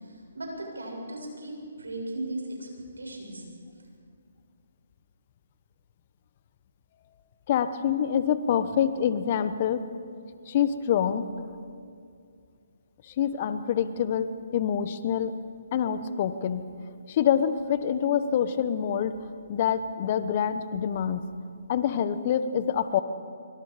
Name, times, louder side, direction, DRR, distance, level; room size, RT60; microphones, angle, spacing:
voice 1, 0.0-2.7 3.0-3.4, right 1 dB, 85° right, 0 dB, 7.6 m, -37 dB
voice 2, 7.5-9.8 10.5-11.3 13.1-15.3 15.7-16.6 17.1-19.1 19.5-21.2 21.7-23.0, left 8 dB, 40° left, 12 dB, 1.1 m, -26 dB
25.5 x 24.0 x 5.1 m, 2.3 s
figure-of-eight pair, 140°, 0 cm